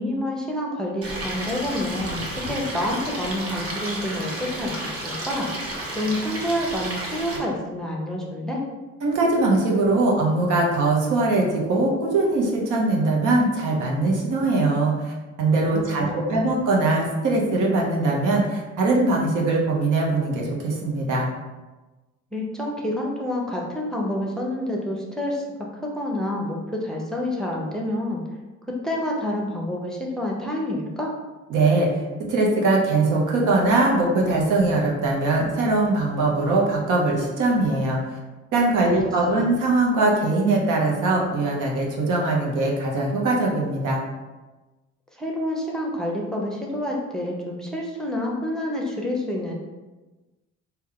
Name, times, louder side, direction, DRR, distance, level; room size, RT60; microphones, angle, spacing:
voice 1, 0.0-5.5 5.9-8.6 15.7-16.5 22.3-25.4 25.8-28.2 28.7-31.1 38.8-39.0 39.3-39.4 45.1-49.5, left 1 dB, ahead, -2 dB, 0.6 m, -28 dB
Stream, 1.0-7.4, right 1 dB, 50° right, 0.9 m, -32 dB
voice 2, 9.0-15.1 15.4-21.3 31.5-31.9 32.3-38.0 38.5-44.0, right 2 dB, 80° right, -1 dB, 0.8 m, -21 dB
3.3 x 2.3 x 3.7 m, 1.2 s
cardioid pair, 90°, 30 cm